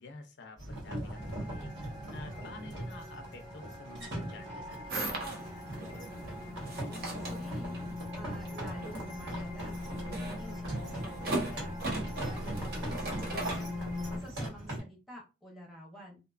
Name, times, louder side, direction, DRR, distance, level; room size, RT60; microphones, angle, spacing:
voice 1, 0.0-1.9 2.1-5.7, left 3 dB, 60° left, 5 dB, 0.4 m, -50 dB
sound 1, 0.6-14.8, right 1 dB, 70° right, 1.1 m, -41 dB
sound 2, 1.1-14.2, left 2 dB, 30° right, 1.0 m, -42 dB
sound 3, 4.9-14.3, right 2 dB, 50° right, 0.7 m, -40 dB
voice 2, 6.9-7.8 8.1-11.8 12.2-16.2, equal, ahead, -2 dB, 0.7 m, -49 dB
2.6 x 2.2 x 2.4 m, 0.29 s
head